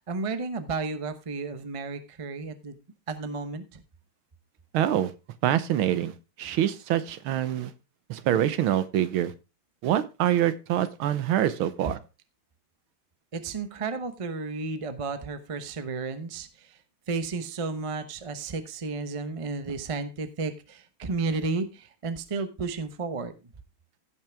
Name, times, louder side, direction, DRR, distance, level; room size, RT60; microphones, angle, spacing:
voice 1, 0.0-2.8 3.1-3.8 13.3-16.8 17.1-23.3, right 4 dB, 50° right, 0.4 m, -32 dB
voice 2, 4.7-5.1 5.4-6.1 6.4-7.7 8.1-9.3 9.8-12.0, right 11 dB, 80° right, 1.7 m, -25 dB
16.0 x 5.9 x 3.4 m
omnidirectional pair, 2.3 m